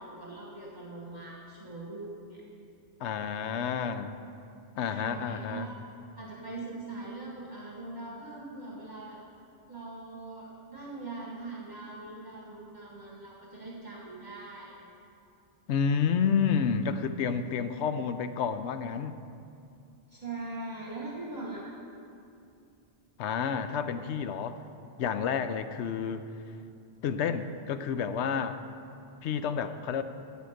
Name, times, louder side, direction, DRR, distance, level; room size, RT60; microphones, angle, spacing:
voice 1, 0.0-2.4 4.9-5.8 6.2-9.2 9.7-14.9 20.1-21.8, right 2 dB, 45° right, -4 dB, 1.4 m, -41 dB
voice 2, 3.0-4.1 4.8-5.7 15.7-19.2 23.2-24.6 25.0-26.3 27.0-28.6 29.2-30.0, left 6 dB, 85° left, 10 dB, 0.9 m, -30 dB
13.0 x 5.0 x 7.8 m, 2.5 s
omnidirectional pair, 1.1 m